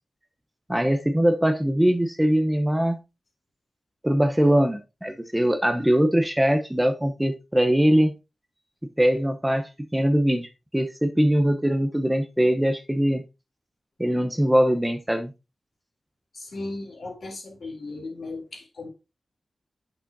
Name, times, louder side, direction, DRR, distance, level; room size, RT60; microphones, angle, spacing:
voice 1, 0.7-3.0 4.0-8.1 9.0-13.2 14.0-15.3, equal, 10° right, 0.9 m, -22 dB
voice 2, 16.3-18.9, left 2 dB, 70° left, 3.1 m, -36 dB
8.6 x 6.2 x 2.7 m
wide cardioid pair, 75°, 0 cm